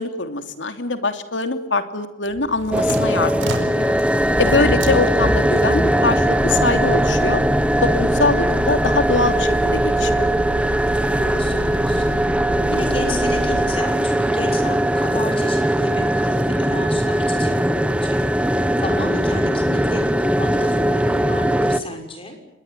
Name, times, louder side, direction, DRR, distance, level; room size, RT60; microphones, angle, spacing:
voice 1, 0.0-4.0 4.4-7.4 7.8-10.3, left 3 dB, 65° left, 8 dB, 3.0 m, -23 dB
sound 1, 2.3-13.9, right 1 dB, 75° right, 5.0 m, -29 dB
sound 2, 2.7-21.8, right 1 dB, 5° right, 1.1 m, -20 dB
voice 2, 10.9-12.2 12.7-18.2 18.7-22.4, left 1 dB, 30° left, 5 dB, 6.5 m, -32 dB
28.5 x 21.5 x 9.4 m, 0.93 s
head